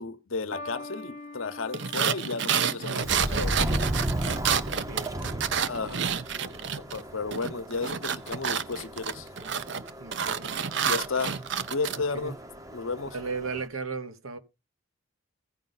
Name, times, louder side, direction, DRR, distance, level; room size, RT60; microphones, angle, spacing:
voice 1, 0.0-3.7 5.7-6.1 6.4-6.5 6.9-9.3 10.9-11.4 11.7-12.4 12.7-13.1, left 4 dB, 75° left, 0.9 m, -33 dB
sound 1, 0.5-7.0 7.9-8.3, left 2 dB, 35° left, 0.7 m, -47 dB
Icy car, 1.7-7.0 7.3-12.0, right 7 dB, 55° right, 0.6 m, -29 dB
Subway metro underground, 3.0-13.7, right 1 dB, 15° right, 0.7 m, -35 dB
voice 2, 4.9-5.5 10.0-10.5 12.1-12.4 13.1-14.4, right 4 dB, 85° right, 1.2 m, -36 dB
15.5 x 5.2 x 4.0 m
head